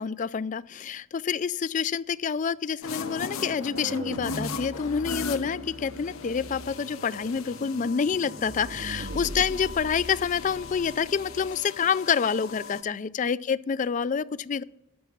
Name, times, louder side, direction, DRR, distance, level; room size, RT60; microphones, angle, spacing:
voice 1, 0.0-14.6, left 6 dB, 35° left, 19 dB, 0.3 m, -28 dB
sound 1, 2.8-12.8, left 5 dB, 80° left, 0.8 m, -39 dB
sound 2, 2.9-11.6, right 2 dB, 40° right, 0.5 m, -41 dB
11.5 x 7.0 x 7.1 m, 0.84 s
head